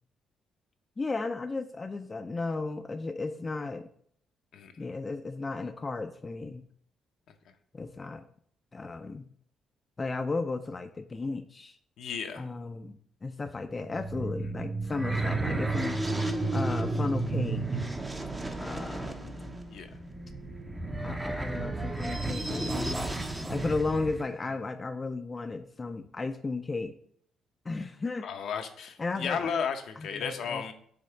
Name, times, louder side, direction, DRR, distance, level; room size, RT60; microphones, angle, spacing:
voice 1, 1.0-3.9 4.8-6.7 7.7-8.2 8.7-9.3 10.0-11.8 12.4-16.0 16.5-17.6 18.6-19.6 21.0-23.1 23.4-27.0 27.7-28.3 29.0-29.5 30.0-30.6, left 3 dB, 25° left, 6 dB, 0.4 m, -34 dB
voice 2, 4.5-4.8 12.0-12.4 19.7-19.9 28.2-30.7, left 6 dB, 70° left, 5 dB, 0.8 m, -34 dB
sound 1, 13.5-21.9, right 3 dB, 55° right, 2.8 m, -45 dB
sound 2, 13.7-24.2, right 2 dB, 15° right, 0.6 m, -32 dB
5.2 x 3.6 x 5.7 m, 0.63 s
cardioid pair, 90°, 0 cm